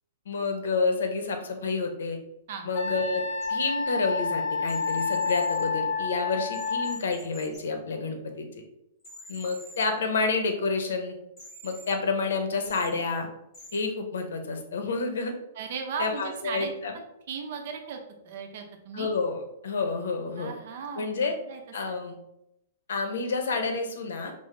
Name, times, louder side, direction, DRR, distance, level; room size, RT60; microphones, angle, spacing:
voice 1, 0.3-2.2 2.6-3.2 3.5-8.5 9.3-11.2 11.6-13.3 13.7-15.3 16.0-16.9 18.9-20.5 21.0-21.3 21.7-22.2 22.9-24.3, left 4 dB, 90° left, 5 dB, 0.7 m, -29 dB
Wind instrument woodwind instrument, 2.7-7.0, left 4 dB, 35° left, 0.9 m, -29 dB
sound 1, 3.4-3.5 4.7-5.6 6.5-7.6 9.0-9.8 11.4-11.9 12.6-12.9 13.5-13.8, right 1 dB, 15° left, 1.4 m, -46 dB
voice 2, 15.6-18.0 18.2-19.1 20.4-21.6 21.9-22.0, right 6 dB, 50° right, 4 dB, 0.6 m, -37 dB
5.4 x 2.0 x 3.2 m, 0.83 s
hypercardioid pair, 175°, 0 cm